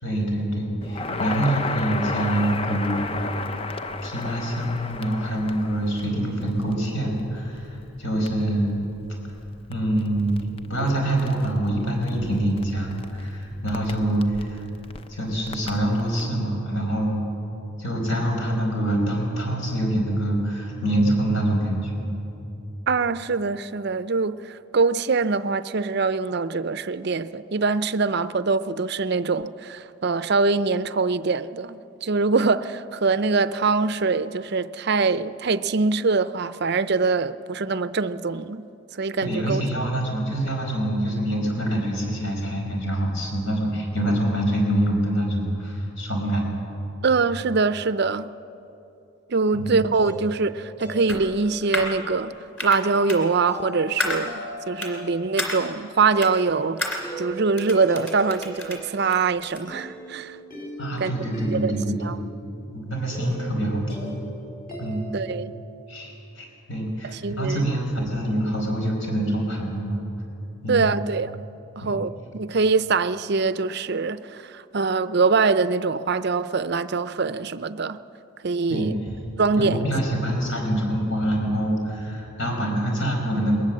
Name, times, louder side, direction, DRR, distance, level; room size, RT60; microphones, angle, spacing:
voice 1, 0.0-3.1 3.4-3.6 4.0-8.8 9.7-14.6 15.1-17.2 17.8-22.0 39.2-46.5 49.5-49.8 60.8-62.2 62.7-64.2 64.8-65.1 65.9-70.0 70.6-70.9 71.8-71.9 78.7-79.2 79.6-83.6, right 1 dB, 65° left, 4.9 m, -25 dB
Crackle, 0.8-16.3, left 3 dB, 25° left, 0.5 m, -35 dB
voice 2, 22.9-38.7 39.0-39.6 47.0-48.3 49.3-52.3 52.6-60.4 61.0-61.1 61.5-61.7 62.0-62.2 65.1-65.5 67.0-67.7 70.7-71.3 71.8-78.0 78.4-79.0 79.4-79.8, right 4 dB, 50° right, 0.5 m, -23 dB
sound 1, 49.7-65.6, right 2 dB, 40° left, 4.7 m, -39 dB
sound 2, 51.1-51.9 52.6-52.8 53.1-53.2 54.0-54.2 54.8-54.9 55.4-55.6 56.2-56.3 56.8-57.0 57.5-58.8 59.1-59.6, left 1 dB, 10° left, 2.8 m, -30 dB
21.0 x 19.5 x 7.5 m
head